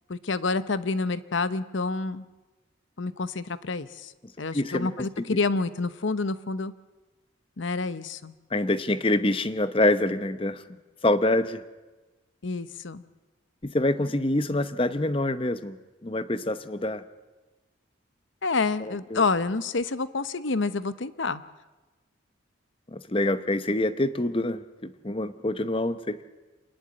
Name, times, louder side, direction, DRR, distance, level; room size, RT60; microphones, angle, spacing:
voice 1, 0.1-2.2 3.0-4.1 4.4-6.7 7.6-8.3 12.4-13.0 18.4-21.4, left 3 dB, 70° left, 14 dB, 0.9 m, -28 dB
voice 2, 4.5-5.4 8.5-10.6 11.0-11.6 13.6-15.8 16.0-17.0 18.8-19.2 22.9-26.2, left 1 dB, 25° left, 12 dB, 0.8 m, -26 dB
27.0 x 10.5 x 9.6 m, 1.2 s
head